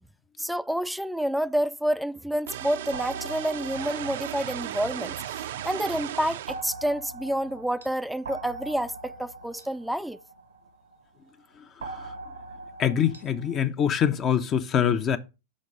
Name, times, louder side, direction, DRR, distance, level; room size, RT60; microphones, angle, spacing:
voice 1, 0.4-10.2, equal, ahead, 0.3 m, -29 dB
sound 1, 2.5-6.6, right 11 dB, 65° right, 0.5 m, -35 dB
sound 2, 2.9-5.7 6.5-11.0 11.8-13.6, right 3 dB, 80° right, 0.9 m, -42 dB
voice 2, 12.8-15.2, left 8 dB, 30° left, 0.6 m, -24 dB
6.3 x 4.5 x 5.4 m
hypercardioid pair, 100°, 0 cm